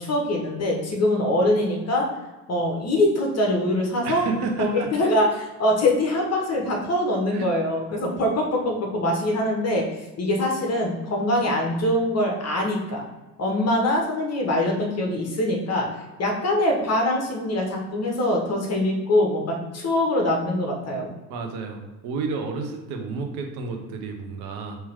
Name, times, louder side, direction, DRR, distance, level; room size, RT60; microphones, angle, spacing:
voice 1, 0.0-2.1 2.5-4.2 4.6-9.8 10.2-13.0 13.4-15.9 16.2-21.1, left 1 dB, 30° left, 1 dB, 1.3 m, -23 dB
voice 2, 4.0-4.9 7.3-7.5 21.3-24.8, right 4 dB, 50° right, 3 dB, 1.0 m, -31 dB
4.5 x 3.0 x 3.7 m, 1.1 s
hypercardioid pair, 80°, 50 cm